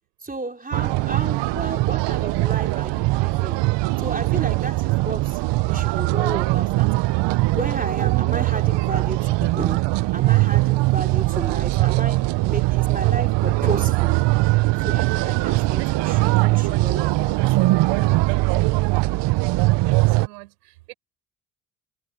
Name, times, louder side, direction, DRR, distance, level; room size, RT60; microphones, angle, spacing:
voice 1, 0.2-3.6 4.0-5.4 5.7-7.0 7.5-14.2 14.8-17.6 18.1-18.6, right 3 dB, 20° right, 4.2 m, -33 dB
sound 1, 0.7-20.3, right 21 dB, 65° right, 1.1 m, -21 dB
voice 2, 19.5-20.9, right 20 dB, 80° right, 5.9 m, -46 dB
hypercardioid pair, 55°, 46 cm